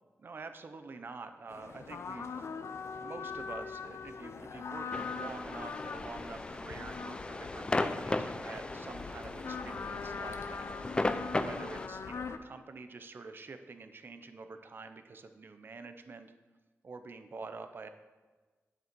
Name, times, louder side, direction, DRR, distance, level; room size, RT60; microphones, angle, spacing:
voice 1, 0.2-2.5 2.9-16.3 16.8-17.9, right 4 dB, 45° right, 8 dB, 0.7 m, -47 dB
sound 1, 1.5-12.4, left 5 dB, 65° left, 0.6 m, -42 dB
sound 2, 4.9-11.9, left 2 dB, 20° left, 0.5 m, -36 dB
9.7 x 7.7 x 4.6 m, 1.3 s
wide cardioid pair, 150°, 5 cm